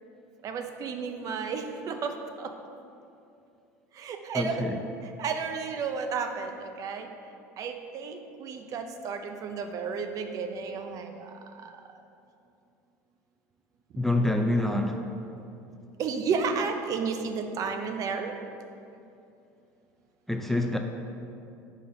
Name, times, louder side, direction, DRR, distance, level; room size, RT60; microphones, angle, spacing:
voice 1, 0.4-2.5 4.0-4.6 5.2-7.1 7.6-11.3 16.0-18.3, right 5 dB, 45° right, 6 dB, 0.6 m, -32 dB
voice 2, 4.3-4.8 14.0-15.0 20.3-20.8, left 1 dB, 5° left, 3 dB, 0.4 m, -26 dB
5.1 x 3.9 x 5.5 m, 2.6 s
supercardioid pair, 100°, 8 cm